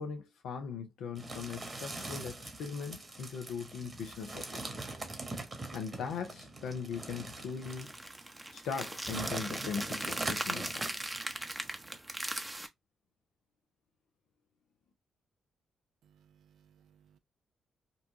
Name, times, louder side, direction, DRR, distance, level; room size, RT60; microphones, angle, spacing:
voice 1, 0.0-4.7 5.7-7.9 8.5-10.9, left 6 dB, 75° left, 0.6 m, -40 dB
sound 1, 1.2-12.0, right 2 dB, 35° right, 1.3 m, -43 dB
sound 2, 7.7-12.7, right 1 dB, 20° right, 0.7 m, -39 dB
voice 2, 16.0-17.2, right 8 dB, 70° right, 0.4 m, -65 dB
3.9 x 2.3 x 2.7 m
hypercardioid pair, 40°, 0 cm